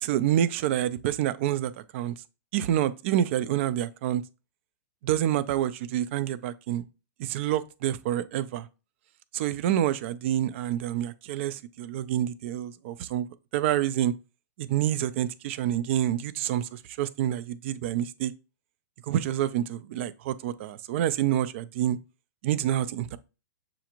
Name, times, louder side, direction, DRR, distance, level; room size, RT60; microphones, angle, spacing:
voice 1, 0.0-2.1 2.5-4.2 5.0-6.8 7.2-8.7 9.3-13.3 13.5-14.1 14.6-18.3 19.1-22.0 22.4-23.2, right 11 dB, 45° right, 0.3 m, -27 dB
6.8 x 2.5 x 2.9 m
hypercardioid pair, 150°, 9 cm